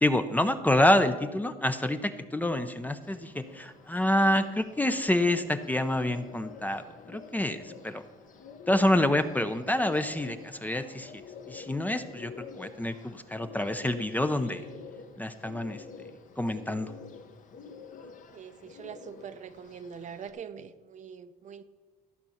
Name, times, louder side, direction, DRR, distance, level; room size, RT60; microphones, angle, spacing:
voice 1, 0.0-8.0 8.7-11.1 11.5-14.6 15.2-15.8 16.4-16.9, left 1 dB, 10° left, 10 dB, 0.6 m, -27 dB
Bird, 3.0-20.3, left 5 dB, 50° left, 1.1 m, -48 dB
voice 2, 18.3-21.6, right 7 dB, 45° right, 11 dB, 0.7 m, -43 dB
13.5 x 5.4 x 7.0 m, 1.4 s
cardioid pair, 110°, 17 cm